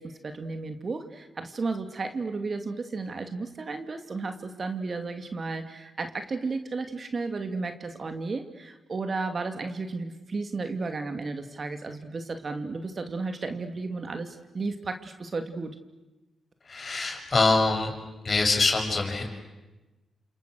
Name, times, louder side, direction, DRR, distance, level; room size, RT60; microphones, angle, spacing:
voice 1, 0.0-15.7, right 3 dB, 50° right, 7 dB, 2.7 m, -33 dB
voice 2, 16.7-17.9 18.2-19.3, left 3 dB, 45° left, 3 dB, 6.9 m, -24 dB
29.0 x 27.5 x 6.5 m, 1.1 s
supercardioid pair, 50°, 0 cm